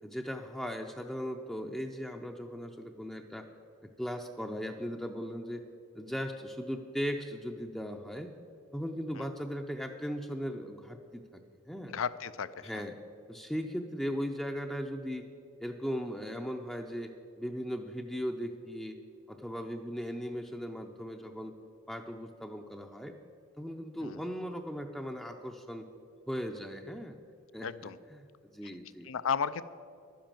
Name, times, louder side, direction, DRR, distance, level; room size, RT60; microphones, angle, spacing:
voice 1, 0.0-3.5 4.0-5.6 5.9-8.3 8.7-11.4 11.7-11.9 12.6-13.0 13.3-15.3 15.6-19.0 19.3-21.5 21.9-23.1 23.6-25.9 26.3-27.2 27.5-28.3 28.5-29.1, equal, ahead, 3 dB, 0.5 m, -38 dB
voice 2, 11.9-12.8 24.0-24.2 27.6-28.0 29.0-29.6, left 6 dB, 80° left, 15 dB, 0.5 m, -34 dB
11.5 x 10.0 x 7.4 m, 2.5 s
head